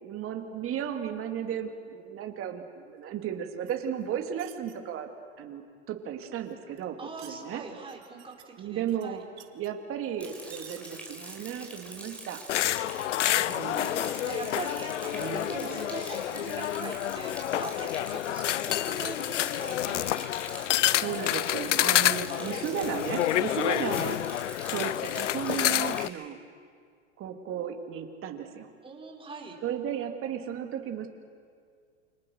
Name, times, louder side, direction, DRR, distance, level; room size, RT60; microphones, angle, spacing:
voice 1, 0.0-5.1 5.4-5.6 5.9-7.6 8.6-9.2 9.5-12.4 13.2-13.9 15.1-15.8 20.9-24.2 24.6-26.4 27.2-28.7 29.6-31.1, right 9 dB, 35° right, 5 dB, 3.0 m, -35 dB
sound 1, 3.7-4.8 6.5-7.4 7.9-8.5 8.8-9.7 10.3-10.9 11.3-11.7 12.1-12.2 12.4-12.6 12.9-14.0 14.5-14.8, right 16 dB, 55° right, 2.1 m, -52 dB
voice 2, 7.0-9.2 12.8-13.4 13.8-20.3 22.2-22.6 23.7-23.8 28.8-29.6, right 4 dB, 15° right, 0 dB, 5.2 m, -42 dB
Rain, 10.2-26.1, right 1 dB, 5° left, 5.9 m, -44 dB
sound 2, 12.5-26.1, left 13 dB, 80° left, 0.6 m, -28 dB
29.0 x 26.0 x 6.7 m, 2.1 s
hypercardioid pair, 100°, 36 cm